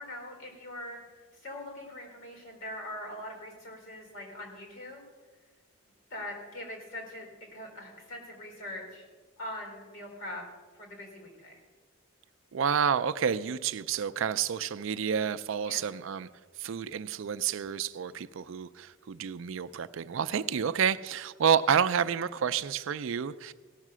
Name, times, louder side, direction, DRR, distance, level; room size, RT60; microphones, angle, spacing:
voice 1, 0.0-5.0 6.1-9.1 9.4-10.4 10.7-11.6 15.6-15.9, left 1 dB, 70° left, 1 dB, 4.0 m, -42 dB
voice 2, 12.5-16.3 16.6-23.5, right 7 dB, 65° right, 13 dB, 0.4 m, -29 dB
17.0 x 6.6 x 6.1 m, 1.4 s
head